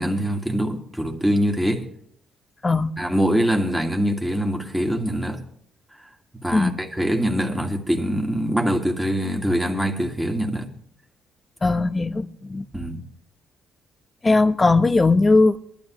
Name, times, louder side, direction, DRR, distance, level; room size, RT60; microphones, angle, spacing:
voice 1, 0.0-1.9 3.0-5.4 6.4-10.7 12.7-13.0, equal, 5° right, 2.2 m, -23 dB
voice 2, 11.6-12.6 14.2-15.6, left 3 dB, 25° left, 0.9 m, -19 dB
23.0 x 12.5 x 3.1 m
cardioid pair, 90°, 0 cm